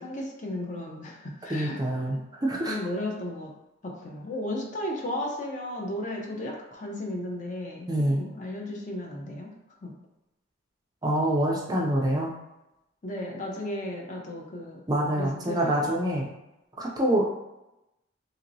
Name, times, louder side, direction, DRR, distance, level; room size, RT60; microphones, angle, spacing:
voice 1, 0.0-1.8 2.1-2.2 2.7-3.5 3.8-9.5 9.8-9.9 13.0-14.8 15.2-15.9, left 1 dB, 40° left, 0 dB, 0.5 m, -34 dB
voice 2, 1.5-2.7 7.9-8.2 11.0-12.3 14.9-16.3 16.8-17.2, right 1 dB, 20° right, -2 dB, 0.4 m, -26 dB
2.9 x 2.8 x 2.6 m, 0.92 s
head